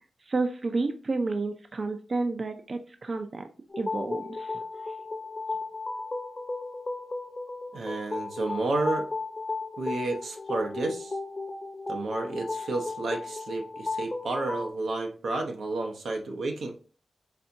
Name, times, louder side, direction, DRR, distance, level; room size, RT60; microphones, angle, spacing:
voice 1, 0.3-3.5 3.8-4.6 4.9-5.0, right 3 dB, 50° right, 6 dB, 0.4 m, -30 dB
sound 1, 3.7-14.7, left 3 dB, 35° left, 0.7 m, -35 dB
voice 2, 7.7-9.0 9.8-11.1 11.9-16.8, right 2 dB, 85° right, 3 dB, 0.7 m, -31 dB
4.2 x 3.4 x 2.7 m, 0.40 s
cardioid pair, 70°, 0 cm